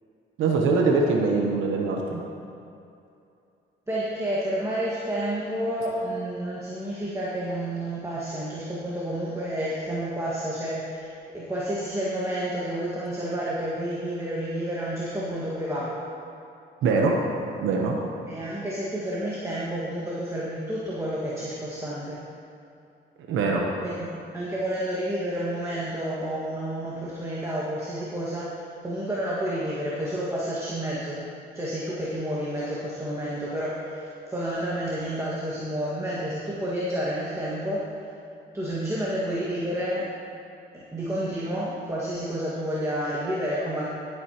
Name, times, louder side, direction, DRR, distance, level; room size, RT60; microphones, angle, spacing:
voice 1, 0.4-2.2 16.8-17.2 17.6-18.0 23.3-23.7, right 4 dB, 85° right, 0 dB, 1.0 m, -23 dB
voice 2, 3.9-15.9 18.3-22.2 23.8-28.5 28.8-31.2 31.5-37.9 38.5-40.1 40.7-43.8, right 1 dB, 15° right, -7 dB, 1.8 m, -30 dB
17.0 x 8.0 x 3.0 m, 2.7 s
cardioid pair, 90°, 20 cm